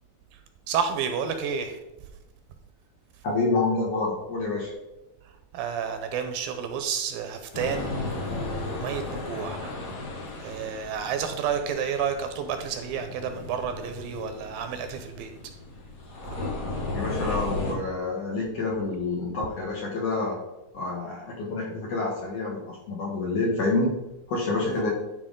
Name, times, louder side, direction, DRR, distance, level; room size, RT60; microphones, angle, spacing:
voice 1, 0.7-1.8 5.5-9.7 10.4-15.3 24.7-24.8, right 7 dB, 80° right, 7 dB, 2.3 m, -30 dB
voice 2, 3.2-4.7 16.9-20.4 20.7-23.9 24.3-24.9, left 3 dB, 60° left, -3 dB, 1.8 m, -28 dB
sound 1, 7.5-17.7, left 2 dB, 85° left, 0.9 m, -35 dB
11.0 x 4.7 x 3.7 m, 0.99 s
omnidirectional pair, 4.4 m